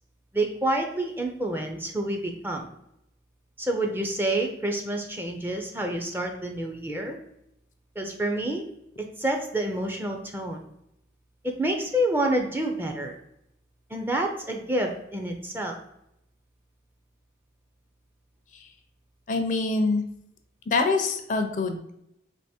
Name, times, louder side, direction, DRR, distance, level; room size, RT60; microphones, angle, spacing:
voice 1, 0.3-2.6 3.6-7.2 8.0-8.6 9.2-10.6 11.4-13.2 13.9-15.8, right 1 dB, 10° right, 3 dB, 0.4 m, -28 dB
voice 2, 19.3-20.0 20.7-21.9, left 3 dB, 45° left, 6 dB, 0.4 m, -25 dB
3.5 x 2.9 x 4.2 m, 0.80 s
head